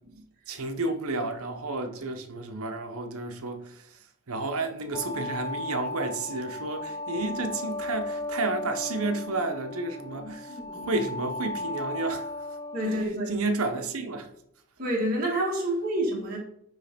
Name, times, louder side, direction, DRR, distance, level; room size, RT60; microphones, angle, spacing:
voice 1, 0.5-3.8 4.3-10.5 10.8-12.3 12.9-13.0 13.3-14.3, right 2 dB, 80° right, 1.0 m, -31 dB
sound 1, 4.9-13.0, left 2 dB, 15° left, 0.3 m, -35 dB
voice 2, 10.1-10.9 12.7-13.3 14.8-16.4, right 1 dB, 40° right, 1.7 m, -29 dB
9.5 x 3.3 x 5.1 m
head